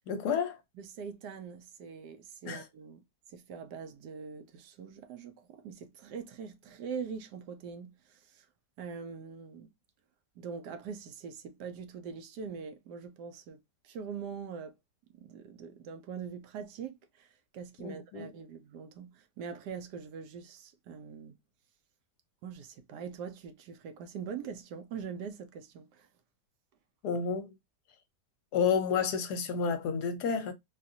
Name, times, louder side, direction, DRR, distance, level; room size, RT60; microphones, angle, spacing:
voice 1, 0.1-0.6 2.5-2.6 17.8-18.3 27.0-27.5 28.5-30.5, left 6 dB, 70° left, 1.1 m, -30 dB
voice 2, 0.8-8.5 8.8-9.7 10.4-14.7 15.1-21.4 22.4-26.1, right 6 dB, 75° right, 1.1 m, -43 dB
3.9 x 2.3 x 2.6 m
omnidirectional pair, 1.9 m